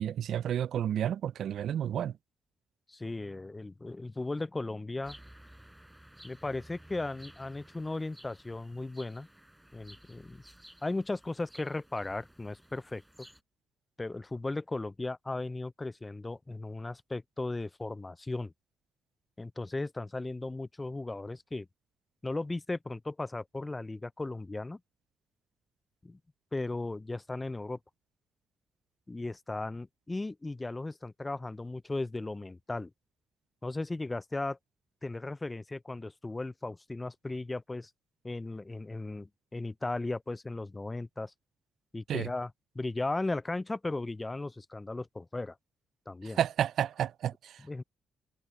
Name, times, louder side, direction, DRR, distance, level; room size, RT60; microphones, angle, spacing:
voice 1, 0.0-2.1 42.1-42.3 46.4-47.6, right 10 dB, 70° right, 0.3 m, -31 dB
voice 2, 2.9-5.2 6.2-9.3 9.7-10.4 10.8-13.3 14.0-18.5 19.4-21.7 22.2-24.8 26.0-26.2 26.5-27.8 29.1-32.9 33.6-34.6 35.0-37.9 38.2-41.3 41.9-45.6 46.1-46.4 47.6-47.8, left 2 dB, 20° left, 0.4 m, -36 dB
sound 1, 5.0-13.4, right 1 dB, 5° right, 5.7 m, -55 dB
cardioid pair, 90°, 0 cm